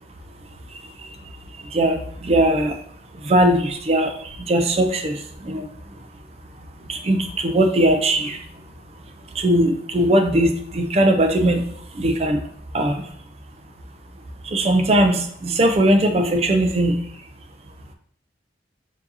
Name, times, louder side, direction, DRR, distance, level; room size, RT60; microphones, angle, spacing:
voice 1, 0.7-2.8 3.1-6.1 6.6-8.4 9.3-11.7 11.9-12.4 12.7-13.1 14.4-17.3, right 1 dB, 35° right, 7 dB, 0.4 m, -20 dB
4.5 x 2.7 x 2.7 m, 0.64 s
head